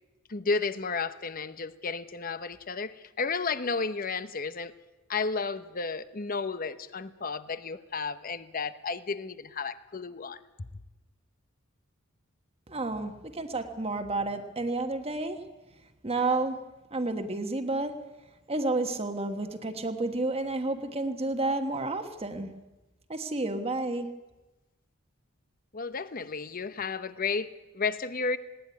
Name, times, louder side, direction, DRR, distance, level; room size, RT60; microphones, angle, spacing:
voice 1, 0.3-4.7 5.1-10.4 25.7-28.4, left 4 dB, 45° left, 13 dB, 0.9 m, -32 dB
voice 2, 12.7-15.4 16.0-16.6 16.9-17.9 18.5-22.5 23.1-24.1, right 2 dB, 30° right, 6 dB, 1.3 m, -30 dB
19.5 x 17.5 x 9.6 m, 1.1 s
head